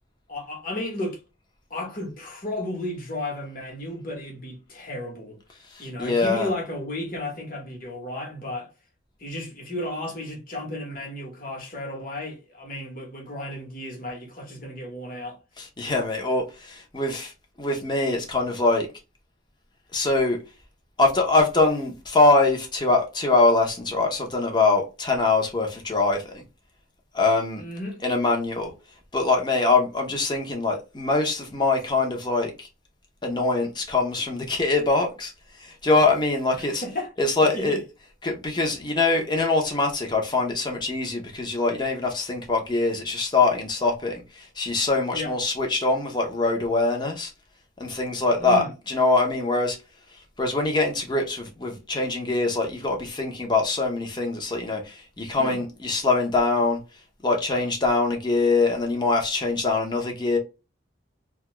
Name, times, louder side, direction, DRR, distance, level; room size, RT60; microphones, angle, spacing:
voice 1, 0.3-1.2 1.7-5.4 5.8-8.7 9.2-15.4 27.6-28.0 36.6-37.1 37.5-37.8 45.1-45.3 48.4-48.7 55.4-55.6, left 1 dB, 45° left, 1.1 m, -33 dB
voice 2, 5.7-6.5 15.6-17.3 17.6-18.9 19.9-20.4 21.0-26.4 27.1-27.6 28.0-28.7 29.1-32.7 33.2-35.3 35.6-36.8 37.2-37.8 38.2-47.3 47.8-49.8 50.4-56.8 57.2-60.4, left 3 dB, 20° left, 0.7 m, -23 dB
2.7 x 2.3 x 3.0 m
head